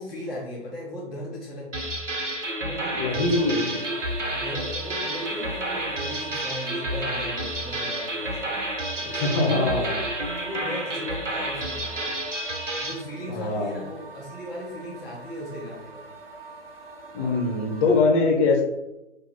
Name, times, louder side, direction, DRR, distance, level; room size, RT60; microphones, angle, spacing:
voice 1, 0.0-3.9 4.3-8.5 8.9-10.0 10.4-12.2 12.5-16.0 17.1-17.4, left 1 dB, 5° right, -9 dB, 0.4 m, -37 dB
sound 1, 1.7-13.0, right 1 dB, 85° right, 1.3 m, -30 dB
voice 2, 2.9-3.8 9.0-10.0 13.2-13.9 17.1-18.6, left 3 dB, 30° left, 1 dB, 1.5 m, -23 dB
sound 2, 3.1-18.0, right 3 dB, 55° right, 1.2 m, -43 dB
9.5 x 3.2 x 4.4 m, 0.96 s
figure-of-eight pair, 125°, 36 cm